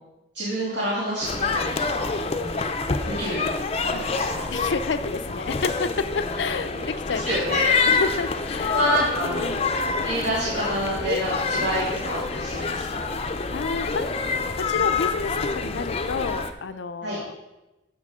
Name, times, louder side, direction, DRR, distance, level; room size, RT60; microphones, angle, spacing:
voice 1, 0.3-2.1 2.4-2.7 3.2-3.4 3.8-4.3 6.7-6.8 7.3-7.9 8.7-9.5 10.0-13.0 17.0-17.2, right 1 dB, 70° right, -8 dB, 2.5 m, -28 dB
sound 1, 1.2-16.5, left 4 dB, 35° left, 0.5 m, -27 dB
voice 2, 4.5-7.3 7.9-8.8 9.2-9.7 13.2-14.2 14.7-17.4, left 4 dB, 80° left, 12 dB, 0.5 m, -30 dB
14.0 x 5.8 x 3.7 m, 1.0 s
head